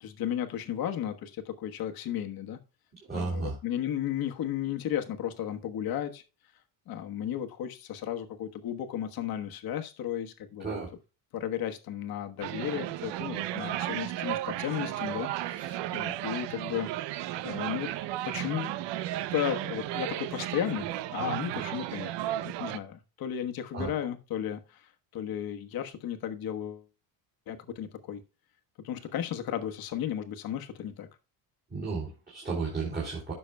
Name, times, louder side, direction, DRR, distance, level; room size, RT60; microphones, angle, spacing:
voice 1, 0.0-2.6 3.1-6.2 6.9-10.8 11.3-17.9 18.2-18.8 19.3-22.1 22.4-26.9 27.5-28.2 28.8-31.1, left 10 dB, 50° left, 6 dB, 1.3 m, -34 dB
voice 2, 3.0-3.5 10.6-10.9 23.7-23.9 31.7-33.3, right 4 dB, 20° right, -6 dB, 3.0 m, -33 dB
sound 1, 12.4-22.8, right 14 dB, 65° right, 0.6 m, -34 dB
15.5 x 6.2 x 2.2 m, 0.31 s
cardioid pair, 145°, 45 cm